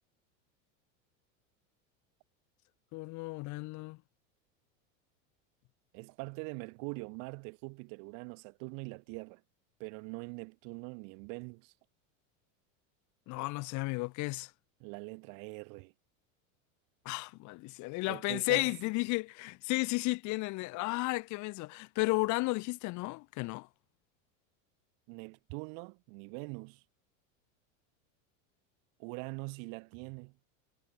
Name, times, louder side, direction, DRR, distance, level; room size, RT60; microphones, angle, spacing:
voice 1, 2.9-4.0 13.3-14.5 17.0-23.7, left 24 dB, 45° left, 1.5 m, -33 dB
voice 2, 5.9-9.4 9.8-11.7 14.8-15.9 18.1-18.7 25.1-26.8 29.0-30.4, right 40 dB or more, 55° right, 1.4 m, -43 dB
supercardioid pair, 140°, 39 cm